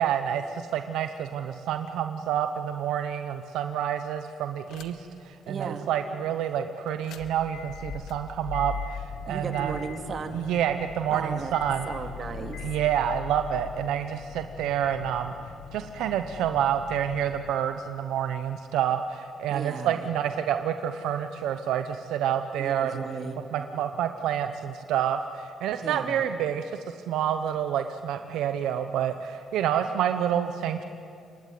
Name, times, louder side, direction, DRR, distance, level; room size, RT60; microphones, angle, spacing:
voice 1, 0.0-9.7 10.3-11.9 12.6-23.0 23.4-30.8, right 9 dB, 85° right, 8 dB, 1.0 m, -28 dB
sound 1, 4.7-5.2 5.6-5.7 6.9-17.5, left 6 dB, 85° left, 1.5 m, -40 dB
voice 2, 5.5-5.8 9.3-10.5 11.1-11.5 11.9-12.6 19.5-20.0 22.6-23.4 25.8-26.2, right 5 dB, 50° right, 6 dB, 2.8 m, -35 dB
26.5 x 22.5 x 9.4 m, 2.5 s
cardioid pair, 90°, 0 cm